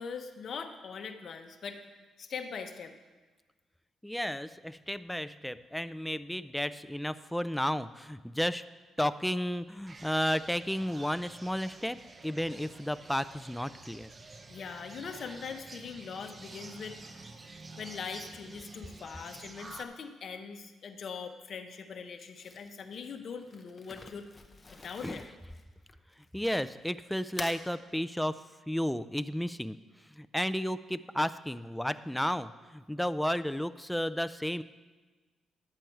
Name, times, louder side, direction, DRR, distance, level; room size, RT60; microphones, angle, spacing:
voice 1, 0.0-1.8 2.2-2.9 14.5-17.0 17.8-24.3 24.8-25.3, left 6 dB, 55° left, 6 dB, 0.9 m, -41 dB
voice 2, 4.0-8.6 9.0-12.0 12.2-14.1 24.8-25.2 26.3-28.4 28.7-29.8 30.2-34.6, equal, 5° left, 13 dB, 0.3 m, -33 dB
sound 1, 9.9-19.9, right 3 dB, 30° right, 0.7 m, -49 dB
Crumpling crinkling, 22.3-26.9 27.2-27.6, left 3 dB, 25° left, 0.8 m, -47 dB
10.5 x 7.6 x 4.5 m, 1.3 s
cardioid pair, 90°, 0 cm